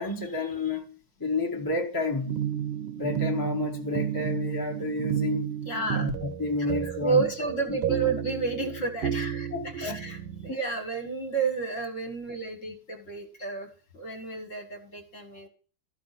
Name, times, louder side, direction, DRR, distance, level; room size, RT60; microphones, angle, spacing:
voice 1, 0.0-2.4 3.0-5.5 5.9-7.2 7.7-7.8 9.5-10.0 10.5-10.6, left 3 dB, 15° left, 0.8 m, -30 dB
sound 1, 2.3-10.5, right 9 dB, 75° right, 1.5 m, -32 dB
voice 2, 5.6-6.1 6.6-13.7 13.9-15.5, right 4 dB, 40° left, 1.5 m, -31 dB
13.5 x 4.9 x 4.0 m
omnidirectional pair, 2.4 m